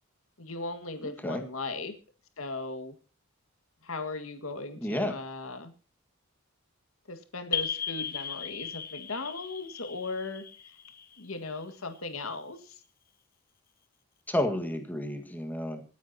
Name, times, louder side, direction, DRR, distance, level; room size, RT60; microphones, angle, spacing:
voice 1, 0.4-1.9 2.4-3.0 3.8-5.7 7.1-10.4 11.2-12.8, left 3 dB, 70° left, 8 dB, 1.9 m, -37 dB
voice 2, 1.0-1.4 4.8-5.2 14.3-15.8, left 1 dB, 10° left, 5 dB, 1.7 m, -31 dB
sound 1, 7.5-12.0, left 7 dB, 45° left, 1.2 m, -37 dB
26.0 x 9.5 x 2.9 m, 0.37 s
head